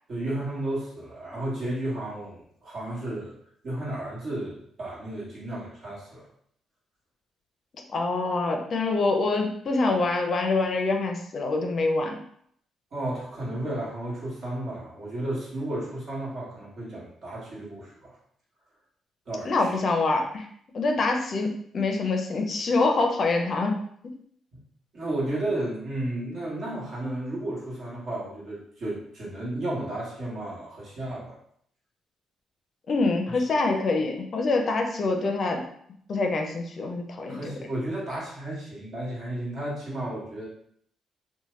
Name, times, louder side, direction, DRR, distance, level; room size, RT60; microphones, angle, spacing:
voice 1, 0.1-3.3 3.6-6.3 12.9-18.2 19.3-19.8 24.9-31.4 33.3-33.4 37.3-40.5, right 1 dB, 55° right, -5 dB, 1.3 m, -33 dB
voice 2, 7.9-12.2 19.5-20.5 20.7-23.8 32.9-35.7 36.1-37.4, left 3 dB, 50° left, 4 dB, 0.4 m, -25 dB
2.8 x 2.1 x 3.1 m, 0.66 s
cardioid pair, 90°, 0 cm